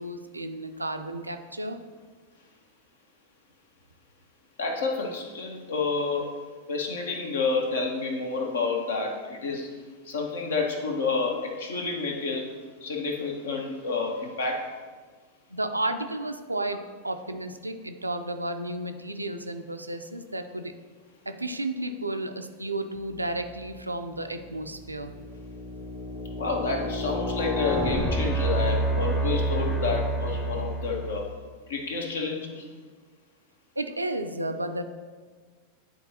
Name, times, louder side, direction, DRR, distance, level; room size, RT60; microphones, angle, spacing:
voice 1, 0.0-1.8 15.5-20.7 21.3-25.1 33.8-34.8, right 1 dB, 85° right, 7 dB, 0.4 m, -32 dB
voice 2, 4.6-6.3 6.7-9.8 10.0-14.8 26.4-31.3 31.7-32.7, left 4 dB, 65° left, 2 dB, 1.0 m, -29 dB
sound 1, 23.5-23.8 24.4-31.3, right 1 dB, 10° left, 0.8 m, -29 dB
10.5 x 3.9 x 2.8 m, 1.5 s
figure-of-eight pair, 90°, 0 cm